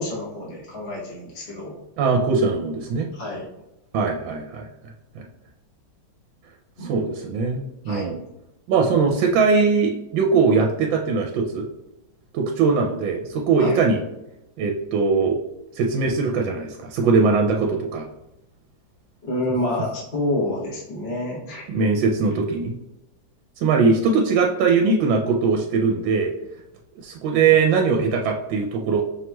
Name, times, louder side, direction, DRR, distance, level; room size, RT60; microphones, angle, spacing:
voice 1, 0.0-1.7 3.1-3.5 6.8-7.0 7.8-8.1 13.6-13.8 19.2-21.7, left 1 dB, 40° left, -6 dB, 0.9 m, -28 dB
voice 2, 2.0-3.1 3.9-4.6 5.1-5.2 6.8-8.2 8.7-11.6 12.3-14.0 14.6-15.4 15.8-18.0 21.7-22.7 23.6-26.3 27.0-29.0, right 4 dB, 80° right, 1 dB, 1.3 m, -21 dB
5.5 x 3.0 x 2.2 m, 0.91 s
omnidirectional pair, 2.1 m